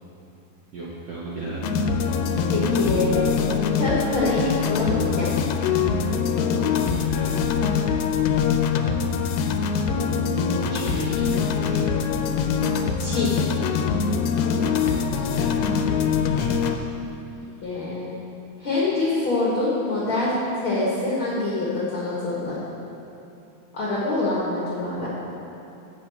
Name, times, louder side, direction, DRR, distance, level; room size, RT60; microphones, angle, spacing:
voice 1, 0.7-1.6 6.9-7.8 10.6-11.8 15.1-15.9 16.3-16.7, right 3 dB, 70° right, -6 dB, 1.5 m, -34 dB
sound 1, 1.6-16.8, left 6 dB, 80° left, 2.3 m, -23 dB
voice 2, 2.5-3.3 3.8-5.3 13.0-13.3 17.6-18.1 18.6-20.3 20.6-22.6 23.7-25.1, left 2 dB, 55° left, -6 dB, 1.5 m, -25 dB
7.3 x 6.2 x 7.8 m, 2.9 s
omnidirectional pair, 4.1 m